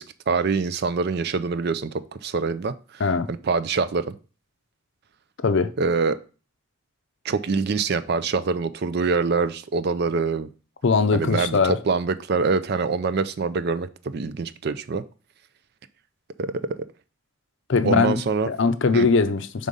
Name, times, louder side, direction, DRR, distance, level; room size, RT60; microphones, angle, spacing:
voice 1, 0.0-3.0 3.3-4.2 5.8-6.2 7.2-10.5 11.1-15.0 16.4-16.9 17.8-18.5 18.9-19.1, right 4 dB, 50° right, 0.4 m, -25 dB
voice 2, 10.8-11.8 17.7-18.2 18.5-19.7, left 4 dB, 60° left, 0.5 m, -20 dB
5.4 x 3.7 x 5.2 m
head